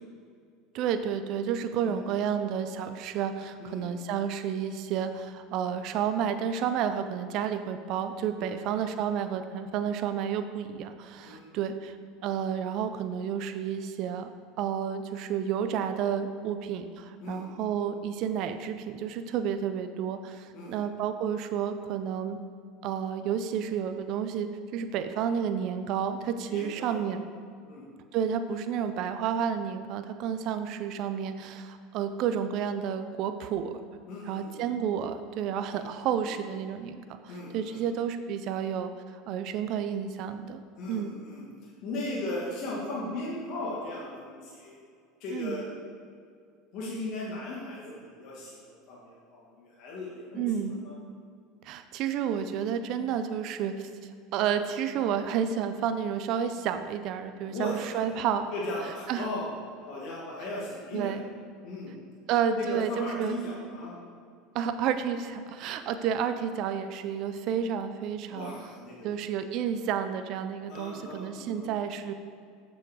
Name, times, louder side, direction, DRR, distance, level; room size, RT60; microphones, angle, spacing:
voice 1, 0.7-12.0 12.2-14.3 14.6-22.4 22.8-27.2 28.1-33.8 34.3-40.6 40.9-41.2 45.3-45.6 50.3-50.7 51.6-58.5 59.1-59.3 60.9-61.2 62.3-63.4 64.5-68.5 69.0-72.1, right 8 dB, 55° right, 9 dB, 0.5 m, -31 dB
voice 2, 26.5-27.0 27.7-27.9 34.1-34.7 35.7-35.8 36.2-36.3 37.3-37.8 40.8-44.8 45.2-45.7 46.7-50.9 57.5-58.1 58.5-59.5 59.9-61.1 61.6-62.0 62.5-64.0 68.3-69.1 70.7-71.7, left 2 dB, 55° left, -4 dB, 1.7 m, -37 dB
6.7 x 6.1 x 4.9 m, 2.3 s
hypercardioid pair, 90°, 0 cm